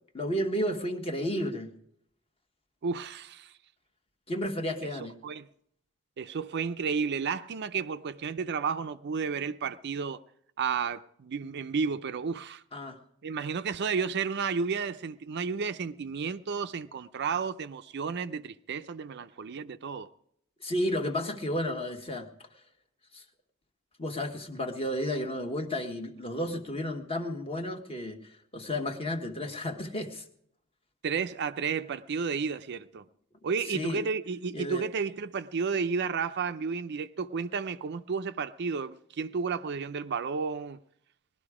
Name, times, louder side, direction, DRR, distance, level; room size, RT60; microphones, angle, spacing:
voice 1, 0.1-1.7 4.3-5.1 12.7-13.0 20.6-22.3 23.1-23.2 24.0-30.2 33.7-34.0 34.5-34.9, equal, 30° left, 1.3 m, -32 dB
voice 2, 2.8-3.5 4.8-4.9 5.2-5.5 6.2-10.2 10.6-12.6 13.2-20.1 31.0-33.0 33.4-40.8, right 5 dB, 55° right, 0.5 m, -32 dB
19.5 x 12.0 x 4.9 m
head